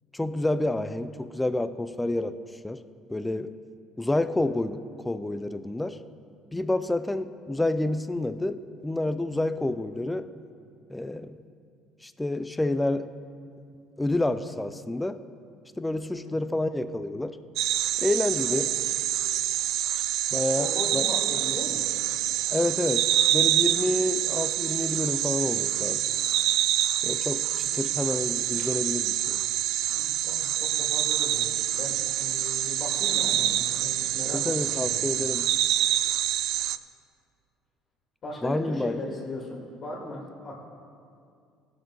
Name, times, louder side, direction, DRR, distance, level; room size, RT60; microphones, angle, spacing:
voice 1, 0.1-2.4 2.6-2.8 3.1-3.5 4.0-6.0 6.5-10.3 10.9-11.4 12.0-13.1 14.0-15.2 15.8-17.4 18.0-18.7 20.3-20.7 20.9-21.1 22.5-26.1 27.0-29.4 34.3-35.5 38.4-39.0, left 2 dB, 10° left, 11 dB, 0.4 m, -28 dB
sound 1, 17.6-36.8, right 13 dB, 70° right, 0.3 m, -26 dB
voice 2, 20.6-21.9 27.7-27.9 29.9-35.0 38.2-40.6, left 2 dB, 40° left, -6 dB, 2.4 m, -38 dB
17.5 x 7.3 x 3.8 m, 2.4 s
cardioid pair, 120°, 0 cm